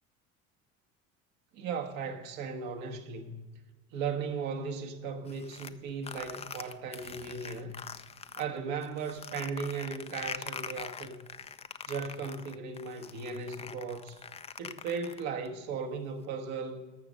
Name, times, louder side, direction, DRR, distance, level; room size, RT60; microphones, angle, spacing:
voice 1, 1.5-3.4 3.9-7.8 8.4-11.2 11.9-14.2 14.6-16.8, right 5 dB, 70° right, 1.6 m, -37 dB
sound 1, 5.3-8.4 8.8-15.5, left 6 dB, 15° left, 0.4 m, -43 dB
14.0 x 6.2 x 5.3 m
hypercardioid pair, 80°, 42 cm